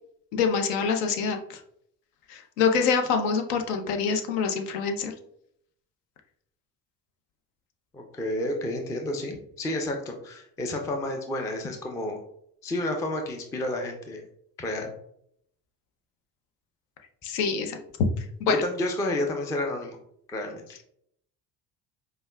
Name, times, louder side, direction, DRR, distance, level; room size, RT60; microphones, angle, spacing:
voice 1, 0.3-1.6 2.3-5.1 17.2-17.8 18.2-18.6, left 5 dB, 65° left, 5 dB, 0.7 m, -26 dB
voice 2, 7.9-12.2 12.6-14.2 14.6-14.9 18.5-20.0 20.3-20.8, left 1 dB, 10° left, 3 dB, 0.3 m, -30 dB
5.1 x 2.2 x 2.3 m, 0.70 s
figure-of-eight pair, 55°, 49 cm